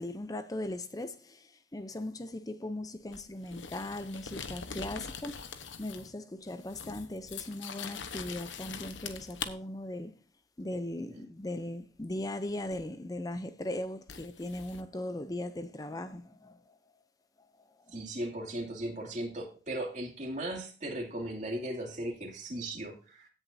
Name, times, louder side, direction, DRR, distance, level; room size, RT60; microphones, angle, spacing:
voice 1, 0.0-5.4 5.8-10.2 10.6-16.6 17.9-18.0, left 1 dB, 20° left, 0.5 m, -38 dB
sound 1, 3.1-6.2 6.5-9.5 12.7-12.8 14.1-14.8, left 6 dB, 85° left, 1.1 m, -43 dB
voice 2, 17.9-23.3, right 1 dB, 40° right, 2.5 m, -37 dB
16.5 x 7.1 x 2.7 m
head